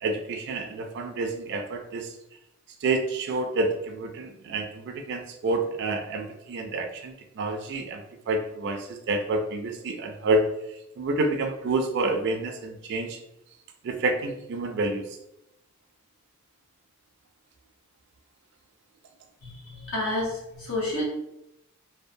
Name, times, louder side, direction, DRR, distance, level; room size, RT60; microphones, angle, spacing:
voice 1, 0.0-2.1 2.8-10.5 11.0-13.2 13.8-15.0, right 2 dB, 55° right, 5 dB, 0.3 m, -28 dB
voice 2, 19.4-21.0, left 1 dB, 70° left, -5 dB, 1.0 m, -30 dB
2.7 x 2.0 x 2.5 m, 0.85 s
head